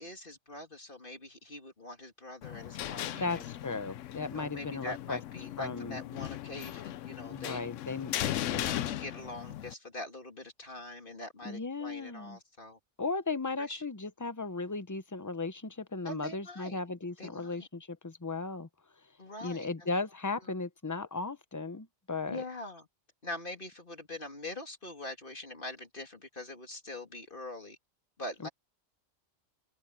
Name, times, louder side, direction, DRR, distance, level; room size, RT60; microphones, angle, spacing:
voice 1, 0.0-3.4 4.3-7.6 8.2-12.8 13.6-13.8 16.0-16.8 17.2-17.7 19.2-19.7 22.3-22.9 23.2-27.8 28.2-28.5, left 2 dB, 40° left, 2.8 m, -43 dB
sound 1, 2.4-9.7, left 13 dB, 75° left, 0.9 m, -38 dB
voice 2, 3.2-5.2 5.6-6.0 7.3-8.9 11.4-12.4 13.0-18.7 19.4-22.4 28.4-28.5, left 3 dB, 20° left, 0.6 m, -36 dB
open air
omnidirectional pair, 1.3 m